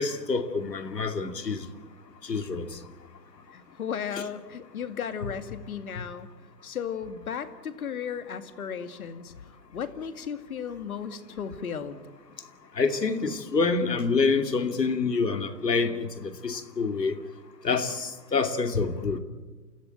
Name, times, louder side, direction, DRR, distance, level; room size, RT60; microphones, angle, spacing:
voice 1, 0.0-1.7 2.2-2.8 6.0-6.1 12.7-17.2 17.6-19.2, left 4 dB, 80° left, 8 dB, 2.6 m, -27 dB
voice 2, 3.5-6.3 6.6-12.0, left 7 dB, 60° left, 10 dB, 2.3 m, -35 dB
28.5 x 16.0 x 9.0 m, 1.3 s
hypercardioid pair, 135°, 48 cm